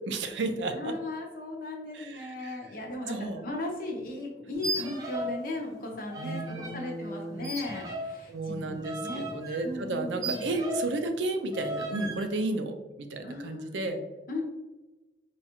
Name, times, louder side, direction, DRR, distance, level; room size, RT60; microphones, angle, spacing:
voice 1, 0.0-0.9 1.9-2.6 3.1-3.4 6.2-7.5 8.3-14.0, right 2 dB, 85° right, 7 dB, 0.4 m, -33 dB
voice 2, 0.7-9.2 9.6-10.5 13.2-13.8 14.3-14.4, left 2 dB, 50° left, 0 dB, 0.8 m, -37 dB
sound 1, 4.5-5.4 5.7-6.8 7.4-11.0 11.5-12.3, right 1 dB, 20° right, 0.5 m, -36 dB
4.4 x 2.3 x 2.9 m, 1.1 s
head